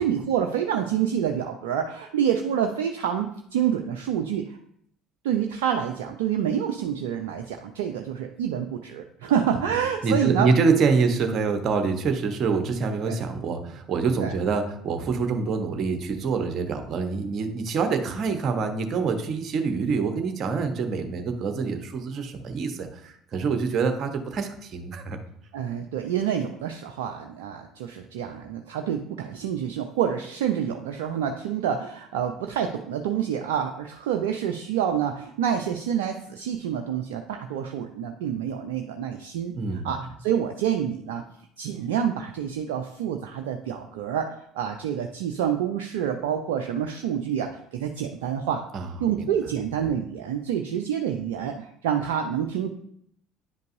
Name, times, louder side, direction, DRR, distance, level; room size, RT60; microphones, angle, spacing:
voice 1, 0.0-4.6 5.2-10.5 13.1-13.2 14.2-14.3 25.5-41.2 41.6-48.6 49.0-52.7, right 9 dB, 70° right, 5 dB, 0.5 m, -27 dB
voice 2, 10.0-25.2 39.5-39.9 48.7-48.9, right 5 dB, 45° right, 6 dB, 1.0 m, -26 dB
9.8 x 5.2 x 2.6 m, 0.70 s
figure-of-eight pair, 60°, 0 cm